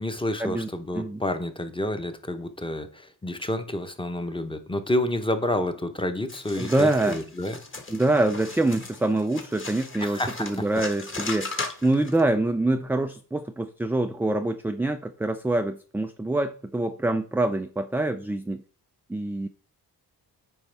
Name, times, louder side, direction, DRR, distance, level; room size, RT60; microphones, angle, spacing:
voice 1, 0.0-7.6 10.0-10.5, left 1 dB, 15° left, 8 dB, 0.9 m, -29 dB
sound 1, 6.3-12.2, left 3 dB, 30° left, 1.5 m, -37 dB
voice 2, 6.6-7.2 7.9-11.5 11.8-18.6 19.1-19.5, right 2 dB, 5° right, 7 dB, 0.3 m, -25 dB
9.1 x 5.4 x 3.4 m, 0.42 s
wide cardioid pair, 115°, 40 cm